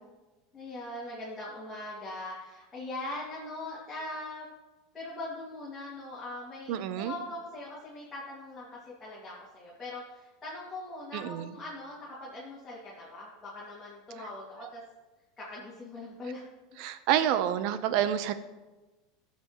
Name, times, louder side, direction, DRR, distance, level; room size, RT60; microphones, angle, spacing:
voice 1, 0.5-4.5 4.9-14.8 15.4-16.5 16.7-17.1, left 2 dB, 15° left, -8 dB, 2.4 m, -41 dB
voice 2, 6.7-7.1 11.1-11.5 16.8-18.3, right 10 dB, 55° right, 12 dB, 0.7 m, -28 dB
17.0 x 6.9 x 3.1 m, 1.2 s
supercardioid pair, 155°, 0 cm